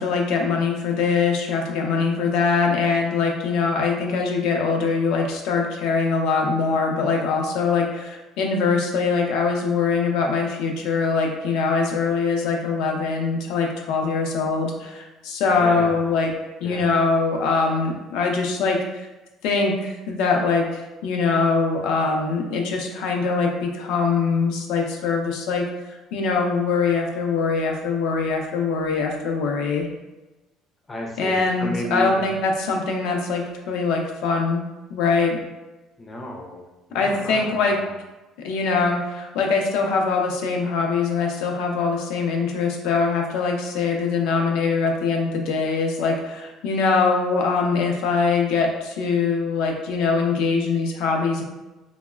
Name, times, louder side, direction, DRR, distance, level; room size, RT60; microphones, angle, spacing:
voice 1, 0.0-16.3 16.6-19.1 19.4-20.7 21.0-25.6 26.1-29.9 31.2-34.6 34.9-35.3 36.9-37.8 38.4-51.4, left 4 dB, 80° left, 2 dB, 0.4 m, -22 dB
voice 2, 15.6-16.1 16.6-16.9 30.9-32.3 36.0-38.0, left 1 dB, 15° left, 0 dB, 0.4 m, -33 dB
3.0 x 2.0 x 2.3 m, 1.1 s
cardioid pair, 145°, 0 cm